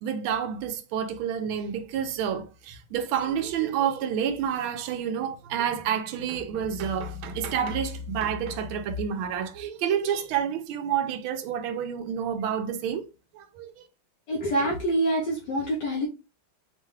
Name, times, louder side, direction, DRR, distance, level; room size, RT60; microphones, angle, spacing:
voice 1, 0.0-13.1 13.3-13.9, right 8 dB, 90° right, 1.5 m, -29 dB
voice 2, 14.3-16.1, right 1 dB, 65° left, 1.3 m, -26 dB
5.2 x 2.3 x 3.1 m
omnidirectional pair, 2.2 m